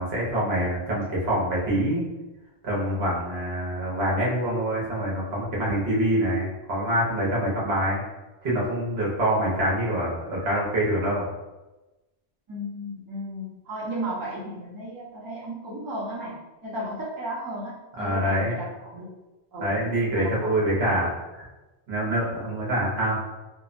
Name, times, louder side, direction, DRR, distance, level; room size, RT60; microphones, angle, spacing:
voice 1, 0.0-2.0 2.6-8.0 8.4-11.3 18.0-18.5 19.6-21.5 21.9-23.2, right 1 dB, 75° right, -5 dB, 1.0 m, -25 dB
voice 2, 12.5-16.4 16.6-19.1 19.5-19.7 20.1-20.8, right 1 dB, 25° right, -7 dB, 0.6 m, -34 dB
2.8 x 2.0 x 2.5 m, 1.1 s
omnidirectional pair, 1.1 m